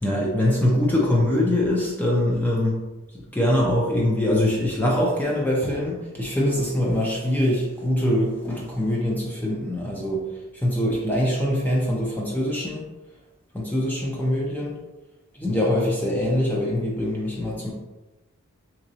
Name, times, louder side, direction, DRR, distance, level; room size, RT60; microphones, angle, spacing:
voice 1, 0.0-2.8 3.3-10.3 10.6-12.8 13.5-14.8 15.4-17.7, left 1 dB, 10° left, -3 dB, 0.4 m, -23 dB
3.4 x 3.0 x 2.7 m, 1.1 s
head